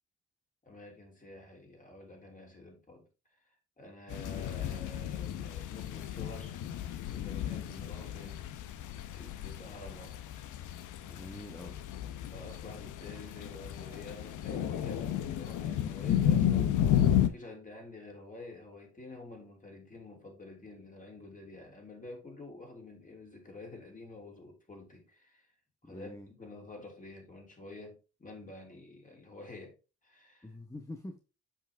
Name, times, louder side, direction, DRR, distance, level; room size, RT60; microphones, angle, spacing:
voice 1, 0.6-6.6 7.1-8.4 9.1-10.1 11.6-11.8 12.3-16.8 17.2-25.5 25.8-29.8 30.0-30.5, left 2 dB, 25° left, 3.2 m, -49 dB
sound 1, 4.1-17.3, left 10 dB, 80° left, 0.8 m, -32 dB
voice 2, 11.1-11.7 25.8-26.3 30.4-31.2, left 1 dB, 10° left, 1.0 m, -45 dB
7.3 x 5.7 x 3.5 m
cardioid pair, 90°, 30 cm